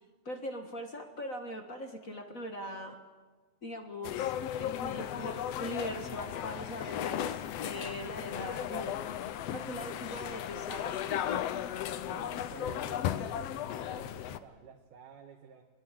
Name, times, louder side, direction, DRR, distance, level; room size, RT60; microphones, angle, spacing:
voice 1, 0.2-3.0 3.6-9.0 9.5-11.4, left 1 dB, 40° left, 5 dB, 1.3 m, -41 dB
sound 1, 4.0-14.4, left 10 dB, 75° left, 1.5 m, -36 dB
voice 2, 12.1-15.6, right 7 dB, 70° right, 2 dB, 3.0 m, -51 dB
24.5 x 21.0 x 7.6 m, 1.3 s
omnidirectional pair, 3.9 m